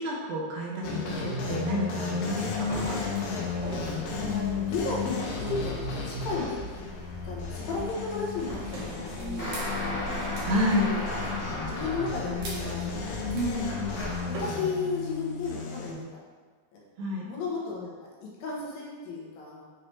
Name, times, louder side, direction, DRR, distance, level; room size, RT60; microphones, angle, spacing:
voice 1, 0.0-3.0 10.4-10.9 13.3-13.7 17.0-17.3, equal, 75° right, -2 dB, 2.4 m, -30 dB
sound 1, 0.8-15.9, left 4 dB, 90° left, 2.9 m, -34 dB
sound 2, 2.4-14.4, equal, 60° right, 2.6 m, -40 dB
voice 2, 4.2-6.9 7.2-10.0 10.8-11.2 11.7-13.1 13.9-16.2 16.7-16.8 17.2-17.9 18.2-19.6, left 4 dB, 70° left, -4 dB, 2.6 m, -34 dB
sound 3, 9.4-12.4 13.6-14.4, left 1 dB, 40° left, 0.8 m, -35 dB
7.3 x 4.7 x 3.1 m, 1.5 s
omnidirectional pair, 4.5 m